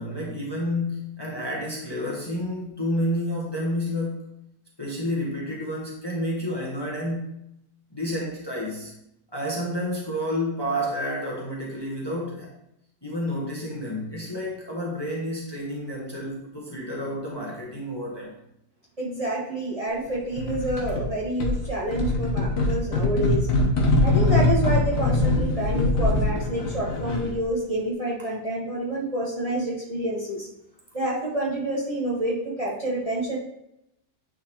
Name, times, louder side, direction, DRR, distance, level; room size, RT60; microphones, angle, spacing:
voice 1, 0.0-4.2 4.8-7.3 7.9-8.9 9.3-12.5 13.0-18.4, equal, 15° left, -4 dB, 1.2 m, -30 dB
voice 2, 19.0-23.5 24.0-30.5 30.9-33.4, right 1 dB, 25° right, -5 dB, 1.2 m, -28 dB
sound 1, 20.4-21.1 21.4-27.4, left 2 dB, 60° left, 1.3 m, -23 dB
9.4 x 4.1 x 3.0 m, 0.81 s
omnidirectional pair, 1.6 m